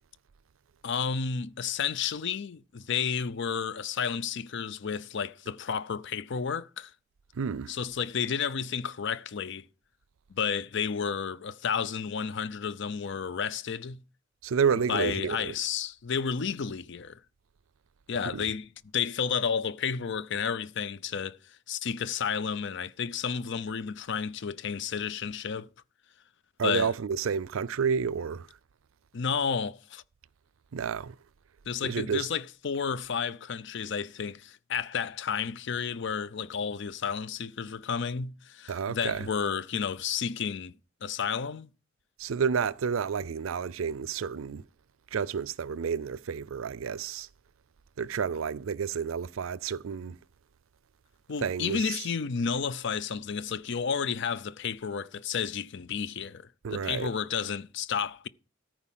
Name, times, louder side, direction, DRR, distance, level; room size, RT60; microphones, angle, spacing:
voice 1, 0.8-6.9 7.7-9.7 10.3-14.0 14.9-17.2 18.1-25.7 26.6-26.9 29.1-30.0 31.7-40.7 41.0-41.7 51.3-58.3, left 6 dB, 60° left, 0.5 m, -31 dB
voice 2, 7.4-7.7 14.4-15.6 18.3-18.4 26.6-28.5 30.7-31.2 31.8-32.3 38.7-39.3 42.2-44.6 45.1-47.3 48.0-50.2 51.4-52.0 56.6-57.1, right 6 dB, 85° right, 0.4 m, -30 dB
13.5 x 4.6 x 7.4 m
head